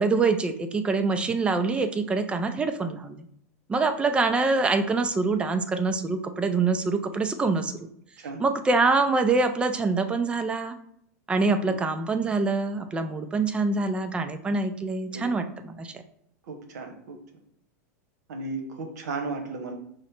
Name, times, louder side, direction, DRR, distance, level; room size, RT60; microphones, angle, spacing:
voice 1, 0.0-3.3 3.7-7.7 8.4-10.8 11.3-15.9, right 3 dB, 10° right, 8 dB, 0.3 m, -25 dB
voice 2, 16.5-17.2 18.3-19.7, right 3 dB, 90° right, 5 dB, 0.9 m, -35 dB
4.9 x 2.1 x 4.3 m, 0.73 s
supercardioid pair, 140°, 9 cm